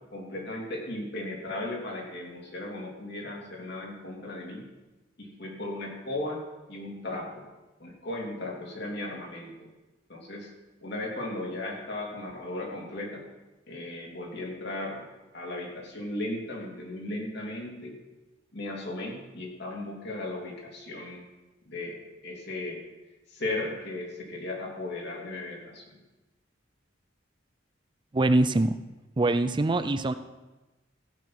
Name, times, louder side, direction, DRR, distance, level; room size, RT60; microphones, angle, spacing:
voice 1, 0.1-4.6 5.2-6.4 6.7-7.4 7.8-9.7 10.1-10.5 10.8-13.2 13.7-15.1 15.3-17.9 18.5-21.2 21.7-22.0 22.2-22.8 23.3-26.0, left 2 dB, 65° left, -1 dB, 3.0 m, -36 dB
voice 2, 28.1-28.8 29.2-30.1, right 2 dB, 25° right, 11 dB, 0.5 m, -23 dB
15.5 x 6.9 x 6.0 m, 1.1 s
head